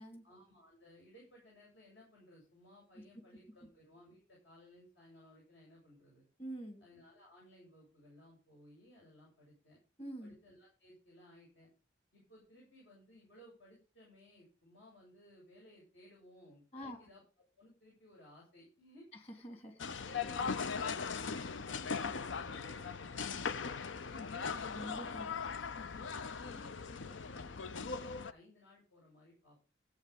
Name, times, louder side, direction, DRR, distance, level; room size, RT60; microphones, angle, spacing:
voice 1, 0.2-6.3 6.8-9.8 10.2-11.7 12.1-17.2 17.6-19.1 19.8-24.6 25.1-29.7, left 1 dB, 75° left, -4 dB, 7.9 m, -60 dB
voice 2, 6.4-6.8 10.0-10.4 16.7-17.1 19.4-19.8 24.7-25.5, right 1 dB, 30° left, 6 dB, 3.1 m, -46 dB
sound 1, 19.8-28.3, left 5 dB, 90° left, 0.7 m, -39 dB
14.5 x 8.6 x 5.3 m, 0.34 s
head